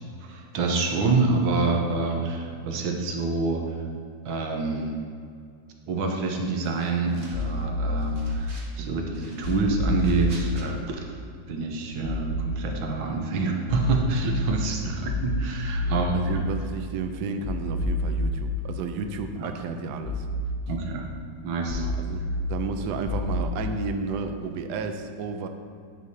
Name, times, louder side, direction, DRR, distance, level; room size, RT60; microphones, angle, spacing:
voice 1, 0.2-3.6 4.2-5.0 5.9-11.1 11.5-16.4 19.4-19.5 20.7-21.0 21.4-21.8, right 3 dB, 90° right, 2 dB, 1.6 m, -27 dB
sound 1, 6.6-7.6 8.0-8.8 9.1-10.7, right 2 dB, 40° right, 0.7 m, -49 dB
sound 2, 7.3-8.3 9.4-10.4 12.0-12.4 13.7-14.3 15.1-16.3 17.4-18.4 20.0-20.4 21.7-22.3 23.1-23.4, left 2 dB, 70° left, 0.6 m, -28 dB
voice 2, 15.8-20.3 21.7-22.2 22.5-25.5, right 4 dB, 75° right, 6 dB, 1.0 m, -32 dB
9.4 x 4.9 x 2.7 m, 2.3 s
omnidirectional pair, 2.1 m